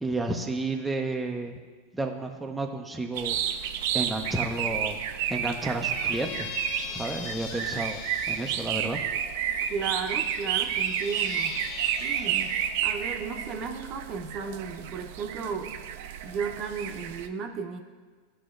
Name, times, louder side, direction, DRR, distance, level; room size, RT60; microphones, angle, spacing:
voice 1, 0.0-1.6 1.9-5.0 5.3-6.5 6.9-9.0, right 2 dB, 5° right, 1 dB, 0.6 m, -32 dB
sound 1, 3.2-17.3, right 9 dB, 65° right, 0.5 m, -31 dB
Squeak, 5.7-8.8 9.6-12.7, left 7 dB, 55° left, 0.7 m, -41 dB
voice 2, 9.7-12.5 12.8-15.7 16.2-17.8, right 5 dB, 40° right, 4 dB, 0.8 m, -34 dB
13.0 x 5.0 x 2.5 m, 1.5 s
hypercardioid pair, 100°, 0 cm